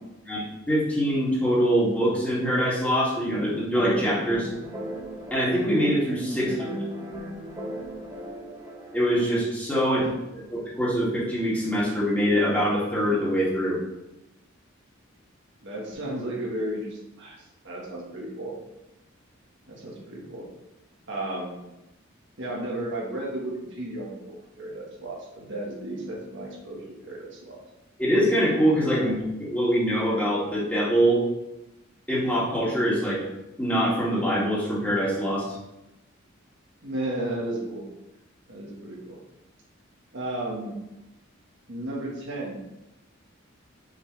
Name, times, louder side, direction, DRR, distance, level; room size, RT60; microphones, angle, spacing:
voice 1, 0.2-4.5 5.3-6.4 8.9-10.0 10.5-13.8 28.0-29.1 29.4-31.2 32.1-33.3 33.6-35.6, equal, 10° left, -8 dB, 2.2 m, -24 dB
sound 1, 3.7-9.4, equal, 25° right, 2.2 m, -37 dB
voice 2, 6.2-6.7 9.8-10.1 15.6-17.4 17.6-18.5 19.7-20.4 21.1-21.6 22.4-27.6 29.0-29.1 36.8-37.8 38.5-39.2 40.1-40.8 41.7-42.6, right 1 dB, 65° right, -3 dB, 1.5 m, -34 dB
6.4 x 5.5 x 3.3 m, 0.94 s
head